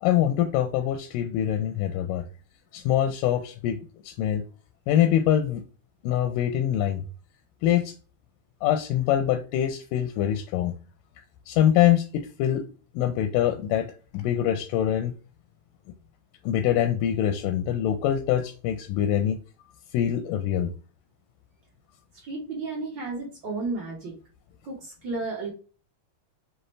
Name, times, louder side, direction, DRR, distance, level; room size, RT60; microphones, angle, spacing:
voice 1, 0.0-2.2 2.7-3.8 4.1-4.4 4.9-5.6 6.0-7.0 7.6-7.9 8.6-10.7 11.5-12.6 13.0-13.9 14.1-15.1 16.5-19.4 19.9-20.7, left 11 dB, 85° left, 7 dB, 2.2 m, -24 dB
voice 2, 22.2-24.1 24.6-25.5, right 3 dB, 85° right, -2 dB, 1.0 m, -32 dB
5.7 x 2.6 x 3.1 m, 0.37 s
omnidirectional pair, 3.7 m